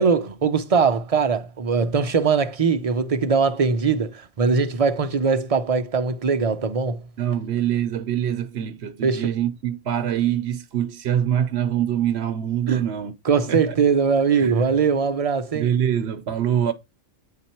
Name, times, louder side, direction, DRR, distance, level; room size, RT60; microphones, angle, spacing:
voice 1, 0.0-7.0 9.0-9.3 12.7-12.8 13.2-15.7 16.6-16.7, right 5 dB, 40° right, 0.6 m, -21 dB
voice 2, 7.2-13.1 13.5-13.7 14.4-14.7 15.5-16.7, right 10 dB, 60° right, 1.0 m, -24 dB
9.3 x 4.3 x 4.4 m
omnidirectional pair, 1.4 m